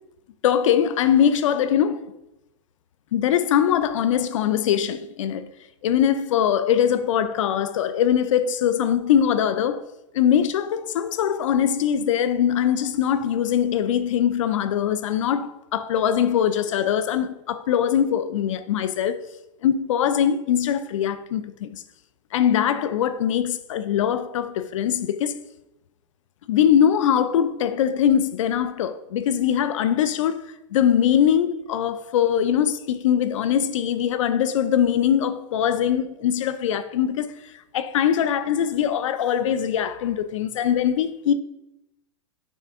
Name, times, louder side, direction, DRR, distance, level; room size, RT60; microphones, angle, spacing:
voice 1, 0.4-2.1 3.1-5.5 5.8-9.9 10.1-19.2 19.6-21.8 22.3-25.4 26.5-30.4 30.7-37.4 37.7-41.3, left 9 dB, 80° left, 0.5 m, -22 dB
6.3 x 3.3 x 4.7 m
hypercardioid pair, 130°, 16 cm